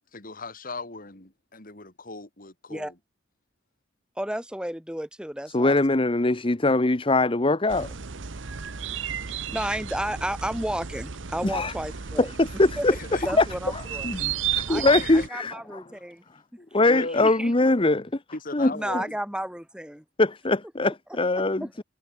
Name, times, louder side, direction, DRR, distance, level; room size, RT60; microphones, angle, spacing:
voice 1, 0.1-2.9 12.9-13.3 14.1-14.2 14.9-15.3 16.9-17.3 18.3-19.1, left 3 dB, 45° left, 3.3 m, -37 dB
voice 2, 4.2-5.8 9.5-12.3 12.8-12.9 13.2-14.1 14.7-14.8 15.3-16.2 16.9-17.5 18.7-20.0 21.6-21.8, right 1 dB, 5° right, 3.0 m, -32 dB
voice 3, 5.5-7.9 11.4-11.7 12.2-12.9 13.4-13.5 13.7-15.8 16.7-18.2 18.5-19.0 20.2-21.8, left 2 dB, 30° left, 1.0 m, -22 dB
sound 1, 7.7-15.3, right 8 dB, 75° right, 1.0 m, -33 dB
head